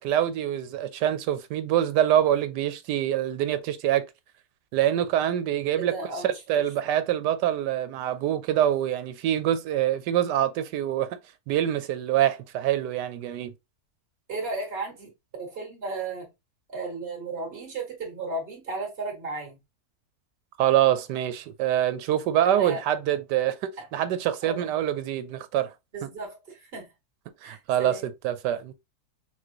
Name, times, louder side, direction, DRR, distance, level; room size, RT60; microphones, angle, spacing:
voice 1, 0.0-4.1 4.7-5.9 6.2-11.2 11.5-13.5 20.6-25.7 26.0-26.1 27.4-28.7, right 11 dB, 85° right, 1.3 m, -25 dB
voice 2, 5.7-6.4 6.9-7.0 14.3-15.1 15.4-16.3 16.7-19.6 22.4-22.8 23.8-23.9 24.4-24.7 25.9-26.9 27.4-28.1, right 3 dB, 35° right, 2.1 m, -34 dB
5.9 x 2.5 x 2.9 m
omnidirectional pair, 1.8 m